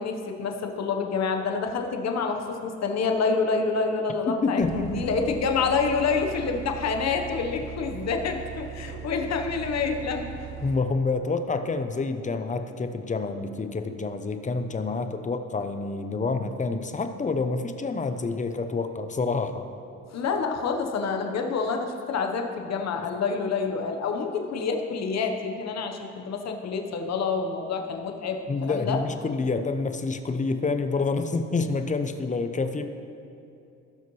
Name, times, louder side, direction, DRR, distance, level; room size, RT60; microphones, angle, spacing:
voice 1, 0.0-10.3 20.1-29.0, left 5 dB, 60° left, 4 dB, 1.1 m, -27 dB
voice 2, 4.3-5.1 10.6-19.7 28.5-32.8, left 3 dB, 25° left, 8 dB, 0.6 m, -28 dB
Bus, 4.6-10.8, right 9 dB, 80° right, 0.6 m, -39 dB
17.0 x 5.7 x 3.1 m, 2.6 s
cardioid pair, 90°, 30 cm